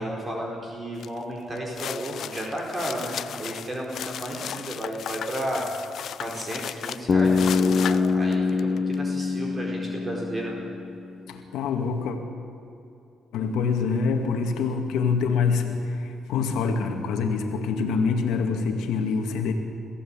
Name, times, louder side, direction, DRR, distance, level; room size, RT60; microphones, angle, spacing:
voice 1, 0.0-5.7 6.2-10.6, right 1 dB, 30° right, -1 dB, 4.4 m, -33 dB
sound 1, 1.0-1.2 1.6-8.9, left 9 dB, 65° left, 0.6 m, -36 dB
Bass guitar, 7.1-11.2, left 4 dB, 40° left, 1.2 m, -24 dB
voice 2, 11.3-12.2 13.3-19.5, left 5 dB, 90° left, 4 dB, 2.1 m, -25 dB
22.5 x 15.5 x 8.9 m, 2.6 s
cardioid pair, 90°, 0 cm